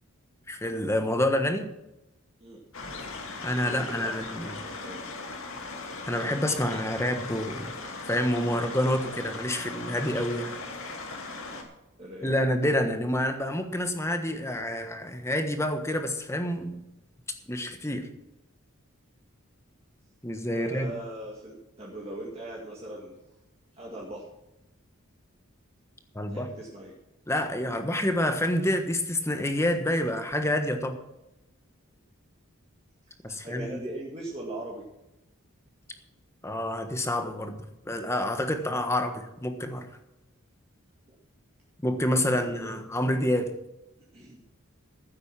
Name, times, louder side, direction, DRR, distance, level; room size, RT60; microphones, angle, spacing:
voice 1, 0.5-1.7 3.4-4.6 6.1-7.7 8.0-10.5 12.2-16.8 17.5-18.1 20.2-20.9 26.1-26.5 27.3-31.0 33.2-33.8 36.4-37.6 37.8-39.9 41.8-43.5, left 1 dB, 15° left, 6 dB, 1.3 m, -28 dB
sound 1, 2.7-11.6, left 3 dB, 70° left, 2.4 m, -38 dB
voice 2, 3.6-5.0 12.0-12.4 20.5-23.2 23.7-24.3 26.3-26.9 33.3-34.9 42.2-42.5 44.1-44.4, right 1 dB, 30° right, -3 dB, 2.1 m, -40 dB
14.5 x 8.1 x 6.0 m, 0.91 s
head